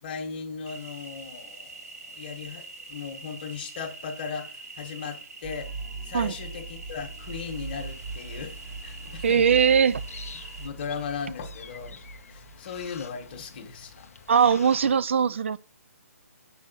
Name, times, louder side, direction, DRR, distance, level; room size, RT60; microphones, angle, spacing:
voice 1, 0.0-5.7 6.0-9.6 10.3-12.0 12.3-14.1 14.4-14.5, left 6 dB, 35° left, 1.8 m, -37 dB
sound 1, 0.7-10.7, right 3 dB, 75° right, 2.1 m, -44 dB
sound 2, 5.4-14.1, right 4 dB, 5° right, 1.0 m, -41 dB
sound 3, 7.2-15.0, left 5 dB, 65° left, 1.1 m, -49 dB
voice 2, 9.2-10.0 14.3-15.6, right 7 dB, 50° right, 0.5 m, -20 dB
7.6 x 5.5 x 6.0 m
hypercardioid pair, 170°, 9 cm